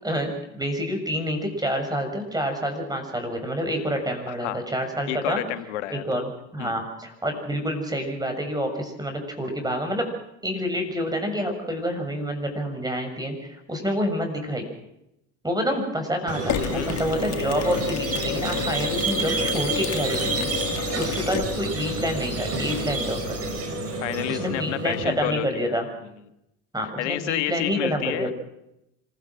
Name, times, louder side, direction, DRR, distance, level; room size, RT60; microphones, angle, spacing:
voice 1, 0.0-5.4 5.9-10.1 10.4-14.6 15.4-20.5 21.0-23.5 24.3-25.8 26.7-28.3, equal, 10° right, 4 dB, 6.7 m, -28 dB
voice 2, 4.3-4.6 5.1-6.2 6.6-6.8 16.6-16.9 21.2-21.3 24.0-26.2 27.0-28.3, left 13 dB, 90° left, 11 dB, 1.4 m, -30 dB
Squeak, 16.3-25.0, right 3 dB, 45° right, 5.4 m, -29 dB
Mechanisms, 16.5-23.6, left 9 dB, 50° left, 2.3 m, -32 dB
26.0 x 16.0 x 6.2 m, 0.83 s
hypercardioid pair, 70°, 35 cm